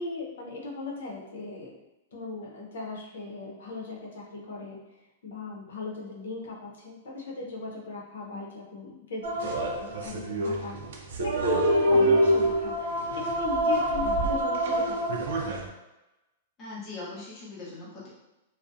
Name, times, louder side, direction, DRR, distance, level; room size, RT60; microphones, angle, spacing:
voice 1, 0.0-1.7 2.1-10.8 11.2-15.1, left 3 dB, 90° left, -2 dB, 0.7 m, -38 dB
sound 1, 9.2-15.7, right 1 dB, 70° right, 0.4 m, -26 dB
voice 2, 16.6-18.1, left 3 dB, 20° left, -7 dB, 0.7 m, -41 dB
2.5 x 2.0 x 2.4 m, 0.99 s
supercardioid pair, 170°, 0 cm